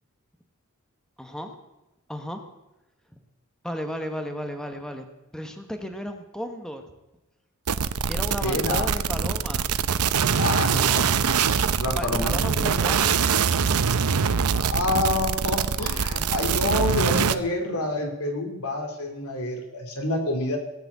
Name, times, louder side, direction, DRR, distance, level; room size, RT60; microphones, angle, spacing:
voice 1, 1.2-1.5 2.1-2.4 3.1-3.2 3.6-5.0 5.3-6.8 8.1-9.7 11.9-13.2, equal, 5° left, 6 dB, 1.2 m, -34 dB
sound 1, 7.7-17.4, right 6 dB, 85° right, 0.7 m, -23 dB
voice 2, 8.4-8.9 10.4-12.6 14.5-20.6, left 2 dB, 80° left, 3 dB, 2.9 m, -28 dB
17.5 x 8.0 x 8.2 m, 0.99 s
head